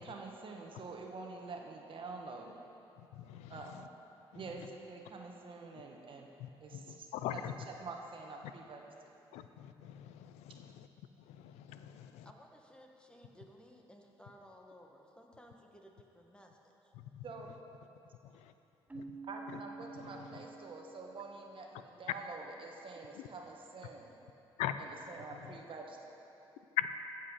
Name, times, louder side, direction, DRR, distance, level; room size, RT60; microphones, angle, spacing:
voice 1, 0.0-2.5 3.5-3.9 4.3-6.3 6.6-7.4 7.8-8.8 17.2-17.5 19.3-24.1 24.8-26.1, right 3 dB, 50° right, 1 dB, 1.3 m, -47 dB
voice 2, 3.0-3.9 4.3-4.7 6.4-7.5 9.3-10.9 11.2-12.3 16.9-17.3 18.2-18.5 18.9-19.0 19.5-19.6 19.9-20.4 23.1-23.3 24.6-24.8 25.3-25.5 26.8-26.9, left 12 dB, 85° left, 10 dB, 0.4 m, -42 dB
voice 3, 12.0-16.9, equal, 10° left, 2 dB, 1.4 m, -58 dB
Keyboard (musical), 18.9-21.5, right 3 dB, 15° right, 0.8 m, -49 dB
15.0 x 5.5 x 5.5 m, 2.9 s
supercardioid pair, 70°, 11 cm